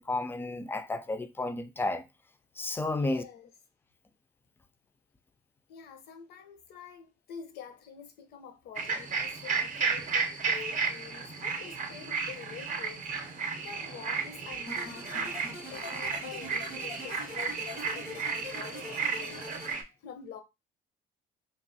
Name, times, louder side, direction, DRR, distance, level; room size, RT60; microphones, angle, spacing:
voice 1, 0.0-2.0 2.6-3.2, left 2 dB, 15° left, 0.3 m, -32 dB
voice 2, 2.9-3.5 5.7-15.4 15.7-19.5 20.0-20.4, left 7 dB, 70° left, 0.6 m, -47 dB
sound 1, 8.7-19.8, right 5 dB, 45° right, 0.6 m, -33 dB
sound 2, 14.7-19.7, left 2 dB, 85° left, 1.0 m, -44 dB
3.1 x 2.5 x 2.6 m
cardioid pair, 110°, 17 cm